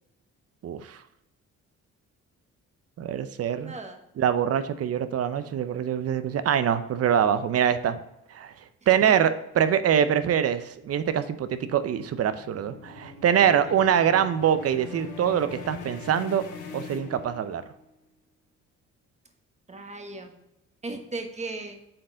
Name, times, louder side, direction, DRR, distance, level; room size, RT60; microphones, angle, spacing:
voice 1, 0.6-1.0 3.0-3.7 4.2-8.0 8.3-8.5 8.9-16.5 16.7-17.6, right 9 dB, 50° right, 12 dB, 0.6 m, -24 dB
voice 2, 3.6-4.0 13.5-13.6 19.7-20.3 20.8-21.8, right 3 dB, 20° right, 5 dB, 1.2 m, -36 dB
sound 1, 10.8-17.8, left 3 dB, 85° left, 1.1 m, -42 dB
7.7 x 4.4 x 3.8 m, 0.87 s
cardioid pair, 90°, 30 cm